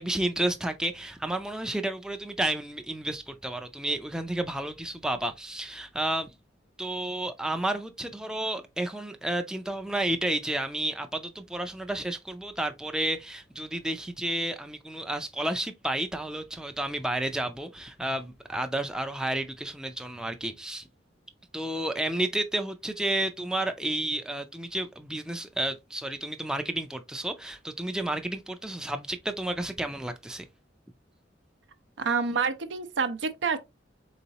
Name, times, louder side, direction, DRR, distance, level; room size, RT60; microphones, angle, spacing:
voice 1, 0.0-6.3 6.8-20.9 21.5-30.5, right 1 dB, 5° right, 0.4 m, -31 dB
voice 2, 32.0-33.6, right 5 dB, 80° right, 0.6 m, -28 dB
4.0 x 3.8 x 2.8 m
head